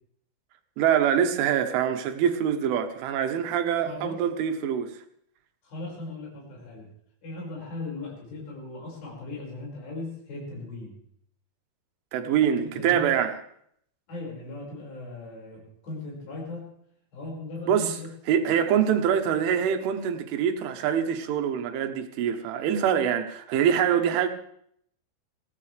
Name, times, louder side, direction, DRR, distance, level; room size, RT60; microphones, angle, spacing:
voice 1, 0.8-4.9 12.1-13.3 17.7-17.9 18.3-24.3, right 8 dB, 85° right, 3.6 m, -24 dB
voice 2, 3.8-4.2 5.6-6.9 7.2-11.0 12.8-13.1 14.1-16.7 17.1-18.1, left 2 dB, 60° left, 7.4 m, -38 dB
21.5 x 16.0 x 3.3 m
omnidirectional pair, 5.5 m